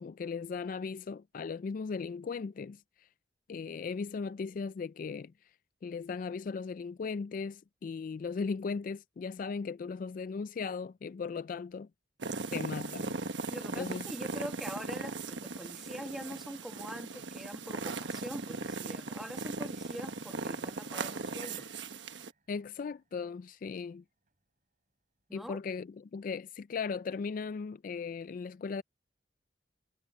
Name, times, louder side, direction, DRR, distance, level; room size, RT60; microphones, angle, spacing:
voice 1, 0.0-3.1 3.5-5.5 5.8-11.9 12.5-13.2 13.7-14.0 22.5-24.0 25.3-28.8, left 5 dB, 45° left, 0.3 m, -37 dB
sound 1, 12.2-22.3, right 3 dB, 75° right, 1.2 m, -38 dB
voice 2, 13.5-21.7 25.3-25.6, equal, ahead, 1.5 m, -44 dB
sound 2, 21.4-25.4 25.9-26.0, right 6 dB, 45° right, 7.7 m, -61 dB
head